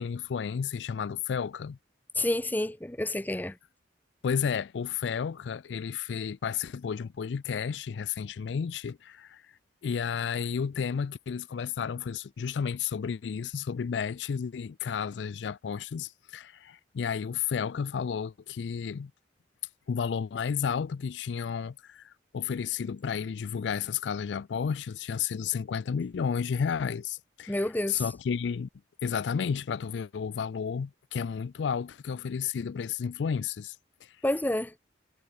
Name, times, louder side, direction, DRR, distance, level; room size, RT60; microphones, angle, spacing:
voice 1, 0.0-1.8 4.2-9.4 9.8-19.1 19.9-27.6 27.9-28.7 29.0-33.8 34.0-34.2, left 6 dB, 70° left, 0.4 m, -32 dB
voice 2, 2.2-3.6 27.5-28.0 34.2-34.7, left 1 dB, 10° left, 0.7 m, -29 dB
head